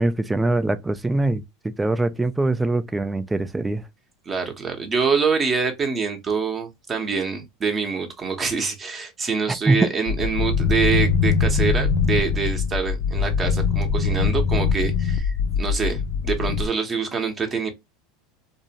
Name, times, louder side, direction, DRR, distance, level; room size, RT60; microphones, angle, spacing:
voice 1, 0.0-3.8 9.7-9.9, right 2 dB, 10° right, 0.3 m, -23 dB
voice 2, 4.3-17.7, right 5 dB, 25° right, 0.7 m, -25 dB
sound 1, 10.1-16.7, left 5 dB, 60° left, 0.4 m, -22 dB
2.5 x 2.1 x 2.7 m
supercardioid pair, 120°, 0 cm